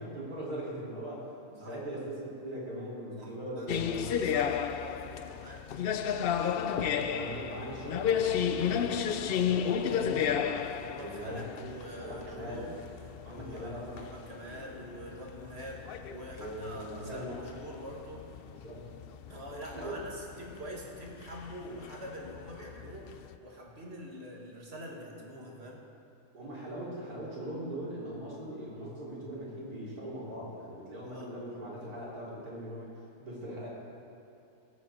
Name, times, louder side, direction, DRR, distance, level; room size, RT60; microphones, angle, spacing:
voice 1, 0.0-4.3 6.7-11.4 12.0-12.6 13.2-14.0 16.4-17.4 18.5-18.8 19.7-20.0 26.3-32.9 33.2-33.7, right 1 dB, 90° right, -7 dB, 3.9 m, -40 dB
voice 2, 3.2-5.6 10.8-12.8 13.3-18.3 19.3-25.8 31.1-31.3, equal, 45° right, -2 dB, 2.0 m, -45 dB
sound 1, 3.7-23.4, left 8 dB, 85° left, 0.5 m, -33 dB
19.0 x 8.7 x 4.3 m, 2.9 s
omnidirectional pair, 1.6 m